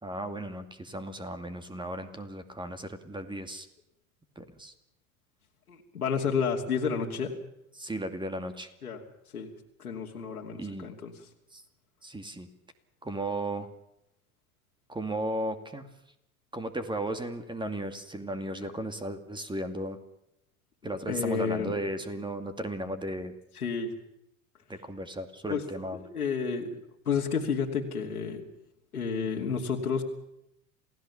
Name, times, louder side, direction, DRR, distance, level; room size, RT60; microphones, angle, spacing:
voice 1, 0.0-3.7 4.4-4.7 7.7-8.7 10.6-10.9 11.5-11.6 12.0-12.5 13.0-13.7 14.9-15.9 16.5-20.0 20.8-23.4 24.7-26.0, right 1 dB, 10° right, 8 dB, 2.4 m, -35 dB
voice 2, 5.7-7.3 8.8-9.0 9.3-9.5 9.8-11.1 20.8-21.7 23.6-23.9 25.5-25.6 26.1-26.8 27.0-28.4 28.9-30.0, left 6 dB, 85° left, 1 dB, 2.8 m, -30 dB
28.0 x 17.0 x 7.1 m, 0.81 s
hypercardioid pair, 80°, 43 cm